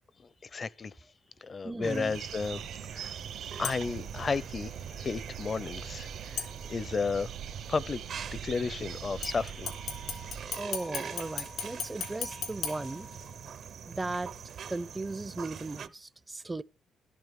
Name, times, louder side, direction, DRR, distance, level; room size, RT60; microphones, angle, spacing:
voice 1, 0.5-0.9 1.4-2.6 2.9-3.1 3.6-7.3 7.7-8.0 8.4-9.7, left 4 dB, 35° left, 0.6 m, -33 dB
voice 2, 1.6-2.2 10.5-13.1 13.8-14.3 14.7-16.6, right 2 dB, 20° right, 0.5 m, -37 dB
sound 1, 1.8-15.9, right 7 dB, 65° right, 0.8 m, -44 dB
sound 2, 2.1-10.5, right 8 dB, 80° right, 1.6 m, -43 dB
sound 3, 3.6-4.1 6.4-7.1 9.2-13.6 14.0-14.1, left 6 dB, 80° left, 2.9 m, -39 dB
12.5 x 12.0 x 3.7 m
cardioid pair, 90°, 0 cm